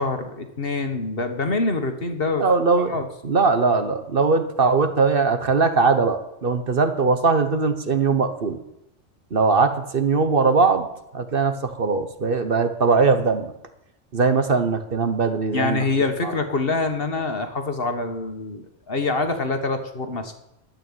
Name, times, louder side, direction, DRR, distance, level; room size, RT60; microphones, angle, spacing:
voice 1, 0.0-2.4 2.9-3.1 15.5-20.3, left 3 dB, 50° left, 6 dB, 1.7 m, -25 dB
voice 2, 2.4-2.9 3.2-8.6 9.3-10.9 11.1-13.5 14.1-15.8 16.2-16.3, right 4 dB, 50° right, 8 dB, 1.3 m, -20 dB
12.0 x 9.1 x 9.0 m, 0.83 s
omnidirectional pair, 1.3 m